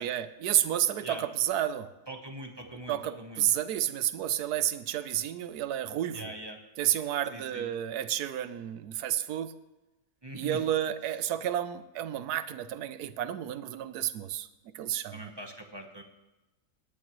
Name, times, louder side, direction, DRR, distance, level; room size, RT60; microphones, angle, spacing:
voice 1, 0.0-1.9 2.9-6.3 6.8-9.5 10.3-14.5 14.7-15.2, right 11 dB, 75° right, 14 dB, 1.2 m, -31 dB
voice 2, 2.1-3.5 6.1-6.6 7.3-7.7 10.2-10.6 15.1-16.0, right 1 dB, 20° right, 4 dB, 0.8 m, -42 dB
17.5 x 10.5 x 3.1 m, 1.0 s
omnidirectional pair, 1.7 m